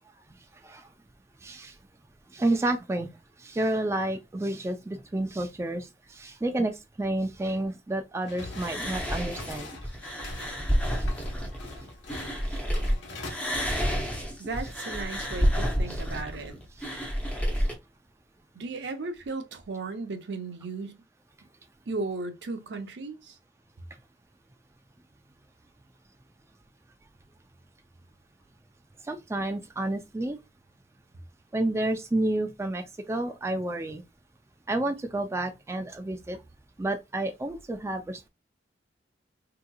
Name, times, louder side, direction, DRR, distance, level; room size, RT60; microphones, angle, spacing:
voice 1, 0.4-0.9 1.4-1.8 2.3-9.7 10.9-11.1 12.5-12.6 13.3-13.4 14.0-14.1 15.9-16.0 16.8-16.9 17.6-17.7 29.0-30.4 31.5-34.0 34.7-36.4 36.8-38.3, right 1 dB, 15° right, 0.3 m, -30 dB
sound 1, 8.2-13.3, left 2 dB, 85° left, 1.0 m, -43 dB
sound 2, 8.6-12.9 13.2-17.7, equal, 5° left, 0.7 m, -29 dB
voice 2, 14.4-16.6 18.5-21.0 21.9-23.4, right 3 dB, 70° right, 0.7 m, -35 dB
3.6 x 2.9 x 2.2 m
head